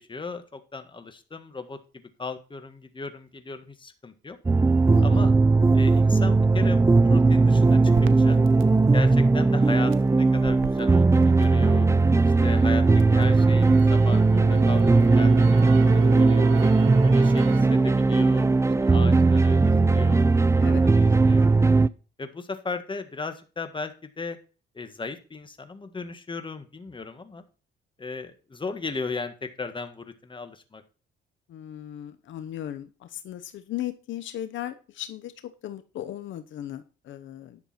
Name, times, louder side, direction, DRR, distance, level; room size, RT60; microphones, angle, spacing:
voice 1, 0.0-1.8 2.2-4.4 5.0-5.3 5.7-8.4 8.9-11.9 12.4-14.8 15.2-16.6 17.0-18.5 18.8-20.7 20.9-21.5 22.2-24.4 24.8-27.4 28.0-30.8, left 4 dB, 25° left, 8 dB, 1.7 m, -36 dB
sound 1, 4.5-21.9, right 3 dB, 15° right, 0.5 m, -19 dB
voice 2, 4.9-5.3 20.6-20.9 31.5-37.6, left 12 dB, 75° left, 11 dB, 0.9 m, -37 dB
Crackle, 7.9-12.1 12.5-17.6, right 10 dB, 85° right, 0.8 m, -39 dB
11.0 x 6.7 x 4.3 m, 0.35 s
cardioid pair, 90°, 20 cm